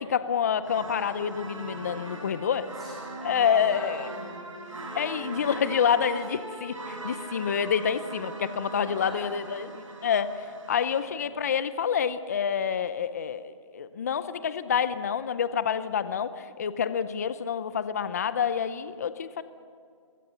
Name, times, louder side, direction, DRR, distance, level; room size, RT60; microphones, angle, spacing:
voice 1, 0.0-2.7 3.2-4.1 4.9-9.7 10.0-10.3 10.7-19.4, left 7 dB, 30° left, 14 dB, 0.7 m, -27 dB
sound 1, 0.6-11.0, right 2 dB, 70° right, 7.0 m, -40 dB
voice 2, 2.6-4.8 8.6-9.7 9.9-10.0 10.7-11.2, equal, ahead, -7 dB, 5.7 m, -45 dB
27.0 x 22.0 x 7.0 m, 2.2 s
hypercardioid pair, 170°, 17 cm